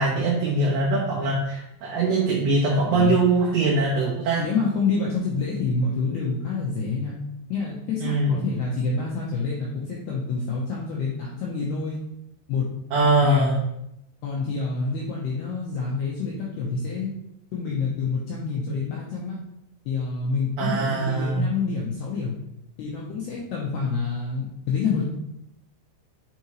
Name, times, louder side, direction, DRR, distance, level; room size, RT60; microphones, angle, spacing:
voice 1, 0.0-4.4 8.0-8.4 12.9-13.6 20.6-21.5, right 2 dB, 75° right, -4 dB, 2.3 m, -22 dB
voice 2, 2.7-3.2 4.4-7.1 7.5-12.0 12.5-12.7 13.2-13.6 14.2-17.1 17.5-19.4 19.9-22.3 22.8-25.1, left 4 dB, 80° left, -4 dB, 2.3 m, -27 dB
8.4 x 4.8 x 3.1 m, 0.83 s
omnidirectional pair, 5.8 m